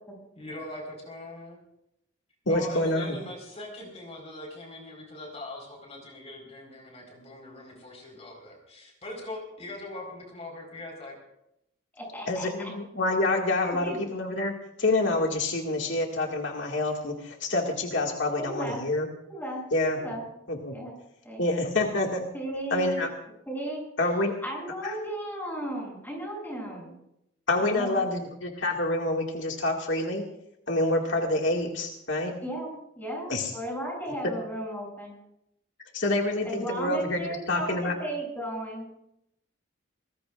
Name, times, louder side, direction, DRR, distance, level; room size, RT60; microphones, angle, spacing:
voice 1, 0.4-1.6 2.5-11.1, left 1 dB, 30° left, 1 dB, 4.5 m, -41 dB
voice 2, 2.5-3.2 12.3-19.1 19.7-20.0 20.5-20.7 21.4-22.3 22.7-23.1 24.0-24.3 24.8-24.9 27.5-30.2 30.7-32.3 33.3-33.5 35.9-38.0, left 2 dB, 70° left, 0 dB, 2.1 m, -27 dB
voice 3, 11.9-12.7 13.6-14.0 18.4-18.8 19.3-19.6 20.0-20.2 20.7-20.9 21.2-21.4 22.3-23.0 23.5-23.8 24.4-26.9 27.6-28.2 32.4-35.2 36.4-38.9, right 1 dB, 10° left, -1 dB, 7.8 m, -35 dB
24.5 x 20.5 x 2.5 m, 0.79 s
head